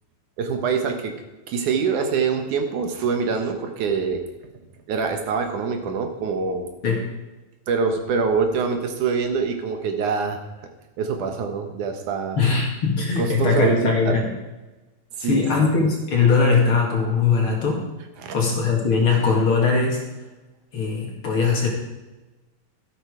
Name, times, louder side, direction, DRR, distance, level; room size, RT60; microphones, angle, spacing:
voice 1, 0.4-1.1 1.5-4.2 4.9-6.7 7.7-10.4 11.0-12.4 13.2-14.2 15.2-15.7 18.2-18.4, right 5 dB, 70° right, 5 dB, 2.6 m, -24 dB
voice 2, 12.4-14.3 15.2-17.8 18.3-20.0 20.7-21.7, left 4 dB, 45° left, 0 dB, 2.7 m, -20 dB
13.0 x 11.5 x 5.0 m, 1.1 s
omnidirectional pair, 3.8 m